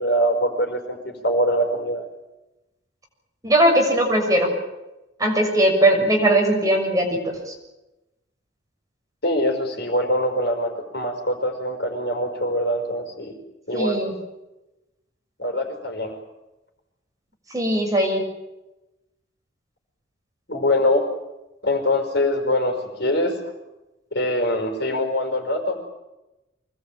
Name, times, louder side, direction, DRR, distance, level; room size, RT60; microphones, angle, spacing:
voice 1, 0.0-2.0 9.2-13.4 13.7-14.0 15.4-16.2 20.5-21.1 21.6-23.4 24.1-25.8, left 1 dB, 60° left, 5 dB, 5.4 m, -23 dB
voice 2, 3.4-4.5 5.2-7.5 13.7-14.1 17.5-18.2, right 1 dB, 20° right, 1 dB, 6.4 m, -19 dB
25.0 x 20.5 x 8.9 m, 1.0 s
head